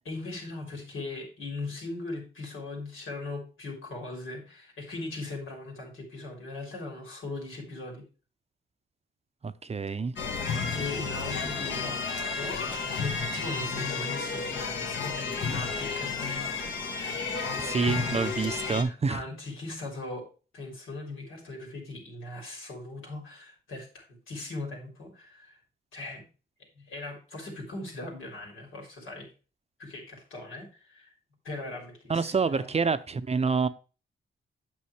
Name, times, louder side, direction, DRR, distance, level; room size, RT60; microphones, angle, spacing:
voice 1, 0.1-8.0 10.2-16.1 18.7-20.3 20.5-25.6 25.9-26.2 26.6-29.3 29.8-31.1 31.4-32.7, left 2 dB, 85° left, 3.6 m, -39 dB
voice 2, 9.4-10.1 17.2-19.2 32.1-33.7, right 5 dB, 30° right, 0.5 m, -28 dB
sound 1, 10.2-18.8, left 5 dB, 65° left, 1.7 m, -32 dB
8.4 x 6.3 x 3.2 m
cardioid pair, 85°, 20 cm